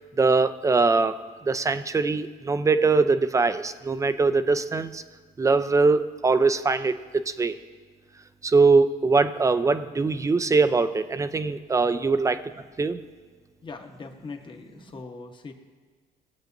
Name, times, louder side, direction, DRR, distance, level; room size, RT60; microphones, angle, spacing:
voice 1, 0.2-1.2 1.5-5.0 5.4-7.6 8.4-12.4 12.8-13.0, right 4 dB, 20° right, 11 dB, 0.5 m, -22 dB
voice 2, 13.6-15.5, left 4 dB, 30° left, 4 dB, 1.1 m, -41 dB
19.0 x 7.9 x 2.6 m, 1.5 s
cardioid pair, 110°, 17 cm